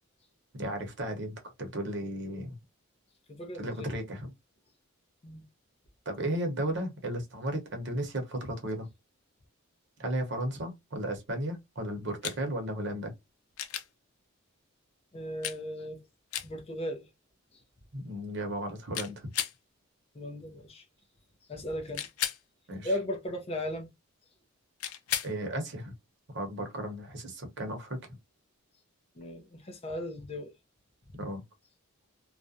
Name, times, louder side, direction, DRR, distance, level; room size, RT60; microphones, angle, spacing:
voice 1, 0.5-2.6 3.6-4.3 6.1-8.9 10.0-13.1 17.9-19.3 22.7-22.9 25.2-25.9 26.3-28.0 31.2-31.4, right 1 dB, 55° right, 0.8 m, -34 dB
voice 2, 3.3-3.9 5.2-5.4 15.1-16.0 16.4-17.1 20.1-20.9 21.5-22.1 22.8-23.9 29.2-30.5, left 1 dB, 25° left, 0.5 m, -36 dB
sound 1, 12.2-12.4 13.6-13.9 15.4-15.6 16.3-16.5 18.9-19.6 21.9-22.4 24.8-25.3 27.6-27.7, left 10 dB, 90° left, 0.4 m, -33 dB
2.4 x 2.1 x 2.5 m
head